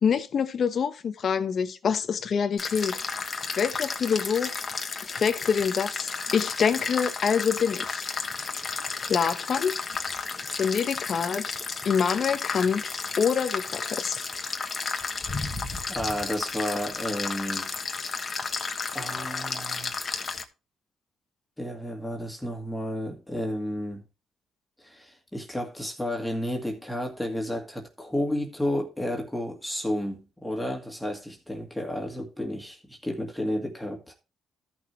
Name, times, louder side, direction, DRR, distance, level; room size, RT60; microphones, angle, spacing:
voice 1, 0.0-3.2 3.6-4.6 5.1-8.0 9.0-9.7 10.6-11.6 11.8-14.2, left 6 dB, 55° left, 1.0 m, -26 dB
sound 1, 2.6-20.4, left 4 dB, 35° left, 1.3 m, -32 dB
voice 2, 15.9-17.7 18.9-19.9 21.6-24.0 24.8-34.1, left 1 dB, 5° left, 2.0 m, -32 dB
13.5 x 6.1 x 3.2 m
cardioid pair, 90°, 0 cm